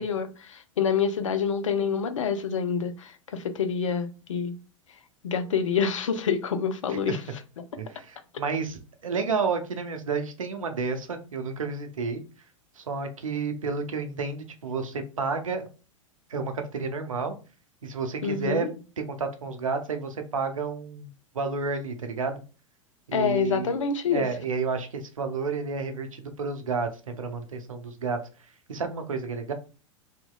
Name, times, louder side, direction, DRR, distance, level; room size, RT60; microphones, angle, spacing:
voice 1, 0.0-4.6 5.2-7.2 18.2-18.7 23.1-24.3, left 6 dB, 65° left, 0.5 m, -27 dB
voice 2, 7.8-12.2 12.8-15.7 16.3-17.4 17.8-18.7 19.0-21.1 21.3-22.4 23.1-23.7 24.1-28.2 28.7-29.5, right 4 dB, 75° right, 0.5 m, -31 dB
2.7 x 2.7 x 2.2 m
figure-of-eight pair, 90°, 17 cm